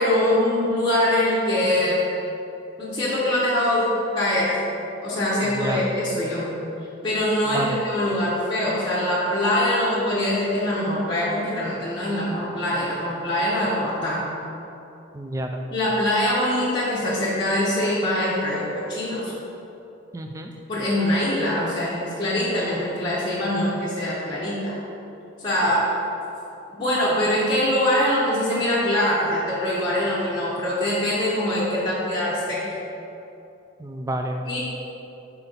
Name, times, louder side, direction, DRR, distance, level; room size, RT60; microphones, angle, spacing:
voice 1, 0.0-2.0 2.8-3.9 4.1-4.6 5.0-6.5 7.0-14.3 15.7-19.3 20.7-24.8 25.4-25.8 26.7-32.7 34.4-34.6, left 1 dB, 20° left, -10 dB, 0.8 m, -23 dB
voice 2, 5.4-5.8 7.4-7.8 15.1-15.6 20.1-20.5 33.8-34.5, right 1 dB, 15° right, 4 dB, 0.3 m, -29 dB
5.8 x 4.4 x 3.9 m, 2.9 s
head